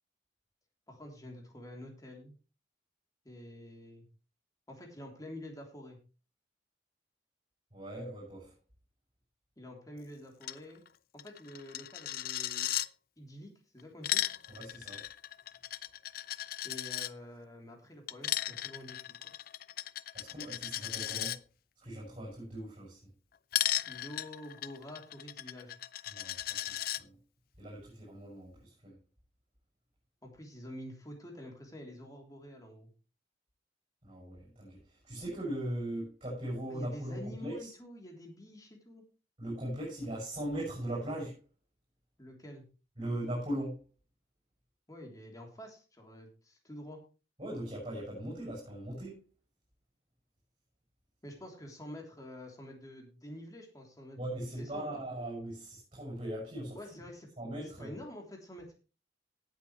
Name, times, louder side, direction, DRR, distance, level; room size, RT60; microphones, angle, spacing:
voice 1, 0.9-2.3 3.2-4.1 4.7-6.0 9.6-10.8 11.1-12.7 13.2-14.2 16.6-19.3 23.9-25.8 30.2-32.9 36.7-39.0 42.2-42.6 44.9-47.0 51.2-54.2 54.6-55.0 56.7-57.3 57.6-58.7, left 1 dB, 20° left, 3.2 m, -48 dB
voice 2, 7.7-8.5 14.6-15.1 20.1-21.4 21.8-23.0 26.1-27.2 27.6-29.0 34.0-37.7 39.4-41.4 43.0-43.8 47.4-49.2 54.2-57.0 57.4-58.0, right 1 dB, 30° right, 6.7 m, -39 dB
Coin (dropping), 10.4-10.6 10.9-11.0 11.2-12.9 13.8-17.1 18.1-21.4 23.5-27.0, left 13 dB, 55° left, 0.4 m, -36 dB
18.0 x 8.2 x 3.2 m
head